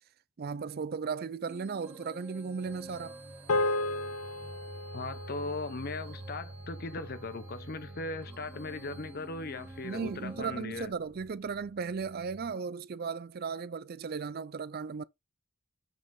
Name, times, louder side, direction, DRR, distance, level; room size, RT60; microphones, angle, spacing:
voice 1, 0.4-3.2 9.8-15.0, right 5 dB, 45° right, 0.4 m, -36 dB
sound 1, 1.5-10.6, right 2 dB, 10° right, 1.5 m, -52 dB
sound 2, 2.6-12.5, right 2 dB, 60° right, 1.6 m, -49 dB
sound 3, 3.5-8.0, left 2 dB, 80° left, 0.6 m, -35 dB
voice 2, 4.9-10.9, left 3 dB, 45° left, 0.7 m, -38 dB
7.5 x 5.4 x 3.7 m
head